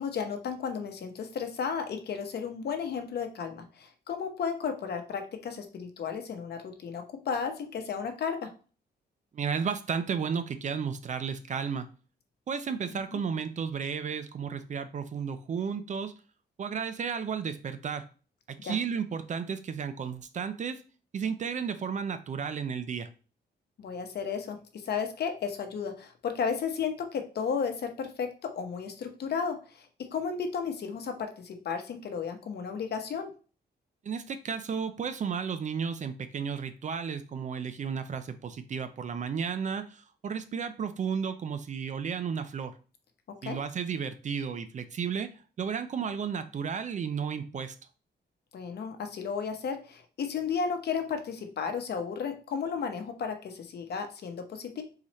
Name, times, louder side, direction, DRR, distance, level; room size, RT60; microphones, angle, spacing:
voice 1, 0.0-8.5 13.1-13.2 18.6-18.8 23.8-24.6 24.8-29.8 30.1-33.3 43.4-43.6 48.5-54.8, left 6 dB, 65° left, 6 dB, 0.8 m, -33 dB
voice 2, 9.3-11.9 12.5-16.1 16.6-18.0 18.6-20.8 21.1-23.1 34.1-39.9 40.2-42.7 43.4-45.3 45.6-47.7, right 6 dB, 45° right, 10 dB, 0.4 m, -33 dB
3.9 x 3.1 x 4.1 m, 0.37 s
wide cardioid pair, 145°, 18 cm